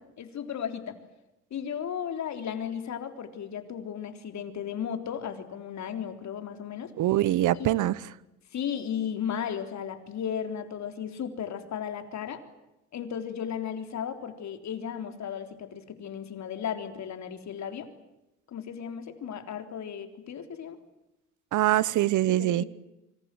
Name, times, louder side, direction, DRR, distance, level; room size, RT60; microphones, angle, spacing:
voice 1, 0.2-1.0 1.5-6.9 7.5-7.9 8.5-12.4 12.9-17.9 18.5-20.8 22.4-22.7, left 8 dB, 65° left, 7 dB, 3.7 m, -35 dB
voice 2, 7.0-8.0 21.5-22.6, right 14 dB, 80° right, 20 dB, 1.0 m, -23 dB
27.5 x 25.0 x 7.7 m, 0.93 s
cardioid pair, 90°, 30 cm